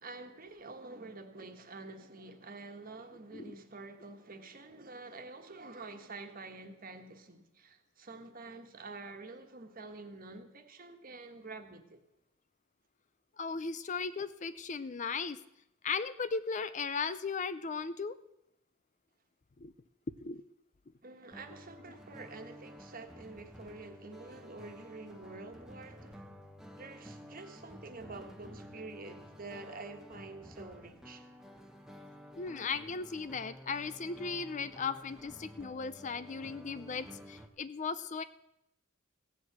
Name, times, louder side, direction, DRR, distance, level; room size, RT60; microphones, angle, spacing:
voice 1, 0.0-12.0 21.0-26.3 26.8-31.3, right 3 dB, 45° right, 1.4 m, -48 dB
voice 2, 13.4-15.4 15.8-18.2 19.6-19.7 20.2-20.4 32.4-38.2, left 5 dB, 35° left, 0.5 m, -37 dB
sound 1, 21.3-37.5, equal, 5° right, 1.0 m, -52 dB
16.0 x 7.4 x 8.1 m
head